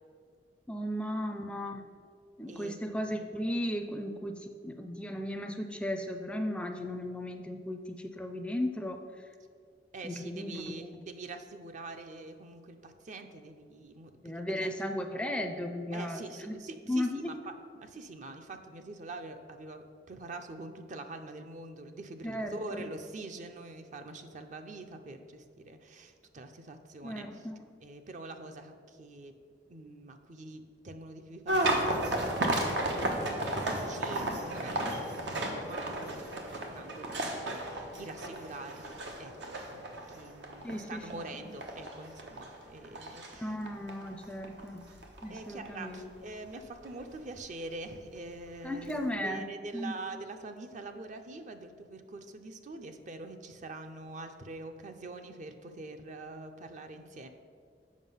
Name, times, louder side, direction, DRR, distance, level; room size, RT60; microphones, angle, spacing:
voice 1, 0.7-1.8 2.4-9.0 10.0-10.9 14.2-16.5 16.9-17.3 22.2-22.9 27.0-27.6 40.6-41.1 43.4-44.8 45.2-46.1 48.6-49.4 49.7-50.0, left 1 dB, 5° left, 5 dB, 0.4 m, -35 dB
voice 2, 9.9-14.1 14.6-14.7 15.9-17.3 17.8-27.2 27.8-29.3 29.7-36.3 36.5-43.5 45.3-48.9 49.2-57.3, right 2 dB, 45° right, 7 dB, 0.5 m, -45 dB
sound 1, 31.5-46.6 46.8-47.4 48.2-48.3 48.6-48.9, right 1 dB, 90° right, 1.1 m, -34 dB
7.3 x 5.5 x 5.5 m, 2.1 s
head